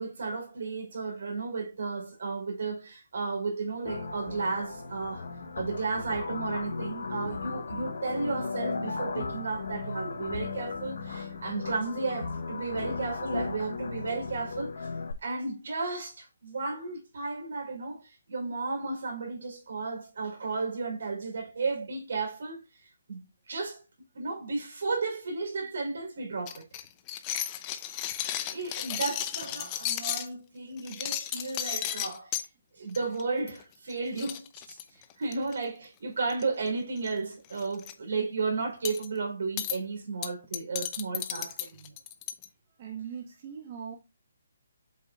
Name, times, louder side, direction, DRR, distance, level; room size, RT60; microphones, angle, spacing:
voice 1, 0.0-5.3 5.5-14.7 15.2-22.6 23.1-23.2 23.5-23.8 24.1-26.6 28.5-32.3 32.7-41.9, right 4 dB, 70° right, 4.2 m, -33 dB
sound 1, 3.8-15.1, left 4 dB, 70° left, 1.3 m, -36 dB
sound 2, 26.5-30.3 30.8-32.5 32.9-33.2 33.5-33.6 33.9-34.0 34.2-35.5 36.3-36.7 37.0-37.1 37.5-37.9 38.9-39.1 39.6-39.8 40.2-42.5, left 11 dB, 25° left, 0.7 m, -34 dB
voice 2, 42.8-44.0, right 7 dB, 40° right, 1.6 m, -40 dB
8.0 x 5.7 x 2.6 m
hypercardioid pair, 150°, 0 cm